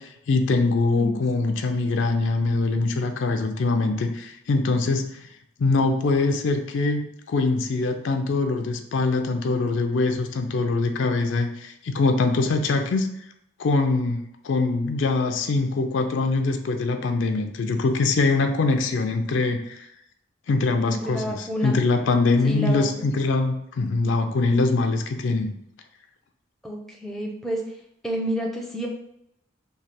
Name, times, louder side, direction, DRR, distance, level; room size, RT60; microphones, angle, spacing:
voice 1, 0.0-5.3 5.6-13.1 13.6-14.2 14.4-19.8 20.5-25.5, left 3 dB, 70° left, 6 dB, 0.4 m, -23 dB
voice 2, 20.9-21.8 22.4-23.1 26.6-27.6 28.0-28.9, equal, ahead, -1 dB, 0.4 m, -29 dB
3.1 x 2.3 x 4.1 m, 0.77 s
head